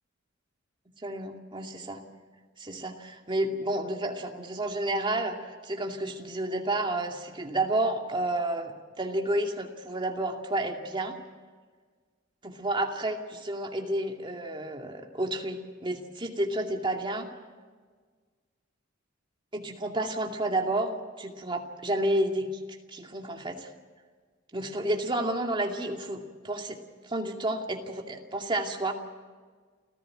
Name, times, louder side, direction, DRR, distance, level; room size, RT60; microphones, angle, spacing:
voice 1, 1.0-2.0 2.6-11.2 12.4-17.3 19.5-22.6 22.9-23.7 24.5-26.8 27.0-28.9, right 1 dB, 25° right, 2 dB, 2.4 m, -30 dB
29.5 x 15.0 x 7.8 m, 1.5 s
head